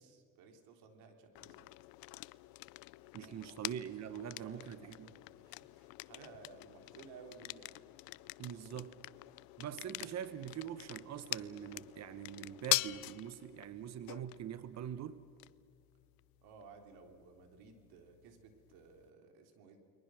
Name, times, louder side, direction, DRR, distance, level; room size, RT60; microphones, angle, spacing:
voice 1, 0.0-1.7 3.2-3.6 4.2-7.7 9.8-9.9 16.4-19.8, right 5 dB, 80° right, 5 dB, 3.6 m, -57 dB
sound 1, 1.3-19.1, left 22 dB, 75° left, 0.6 m, -44 dB
voice 2, 3.1-5.1 8.4-8.9 9.6-15.2, right 9 dB, 45° right, 13 dB, 1.1 m, -43 dB
29.5 x 22.5 x 6.4 m, 2.5 s
supercardioid pair, 100°, 36 cm